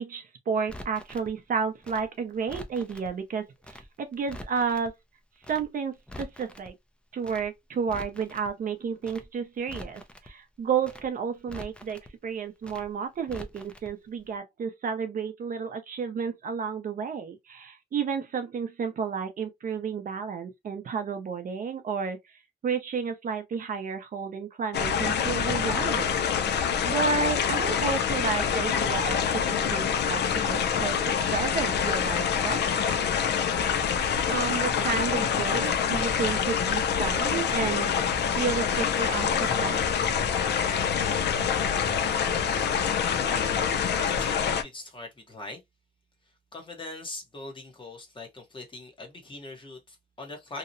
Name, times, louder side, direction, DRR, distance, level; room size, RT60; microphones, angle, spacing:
voice 1, 0.0-4.9 5.5-6.7 7.1-22.2 22.6-26.6 26.8-33.0 34.3-37.9 38.4-39.8, right 6 dB, 55° right, 0.5 m, -31 dB
Crackle, 0.7-1.3 1.8-3.1 3.6-3.9 4.1-4.9 5.4-5.7 5.9-6.7 7.2-7.5 7.8-8.5 9.0-9.3 9.6-10.3 10.8-11.1 11.4-12.1 12.6-12.9 13.2-13.9 14.2-14.3, left 1 dB, 5° left, 0.4 m, -44 dB
sound 1, 24.7-44.6, left 7 dB, 85° left, 0.4 m, -26 dB
voice 2, 44.0-45.6 46.5-50.6, left 2 dB, 30° left, 0.8 m, -41 dB
2.7 x 2.0 x 2.5 m
wide cardioid pair, 145°, 17 cm